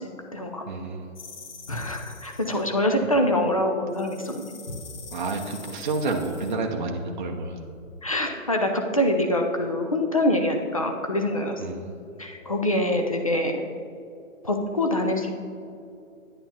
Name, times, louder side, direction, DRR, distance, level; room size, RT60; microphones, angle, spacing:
voice 1, 0.0-0.6 1.7-4.8 8.0-11.8 12.2-13.6 14.4-15.3, left 1 dB, 25° left, 3 dB, 0.5 m, -25 dB
voice 2, 0.7-1.2 5.1-7.6 11.6-11.9, right 3 dB, 35° right, 2 dB, 0.6 m, -29 dB
sound 1, 1.1-2.7 3.9-6.5, left 5 dB, 60° left, 1.1 m, -45 dB
10.5 x 9.4 x 2.8 m, 2.5 s
hypercardioid pair, 160°, 40 cm